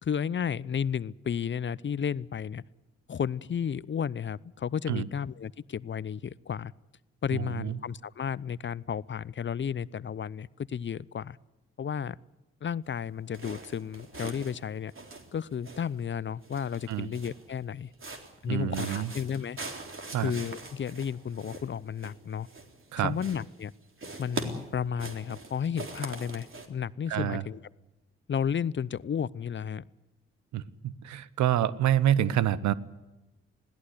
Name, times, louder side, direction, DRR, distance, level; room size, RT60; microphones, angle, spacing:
voice 1, 0.0-2.6 3.1-6.7 7.2-11.4 11.8-12.2 12.6-14.9 15.3-17.9 18.4-19.6 20.2-22.5 23.0-23.7 24.2-27.6 28.3-29.8, left 7 dB, 40° left, 20 dB, 0.7 m, -33 dB
voice 2, 7.3-7.8 16.9-17.1 18.5-19.1 20.1-20.3 22.9-23.2 27.1-27.4 30.5-32.7, right 11 dB, 70° right, 18 dB, 1.0 m, -27 dB
sound 1, 13.3-14.6 14.9-16.1 16.4-17.5 17.9-18.4 18.7-22.9 23.2-23.7 24.0-26.7, right 3 dB, 45° right, 3.8 m, -42 dB
21.0 x 16.5 x 9.9 m, 1.0 s
hypercardioid pair, 45°, 30 cm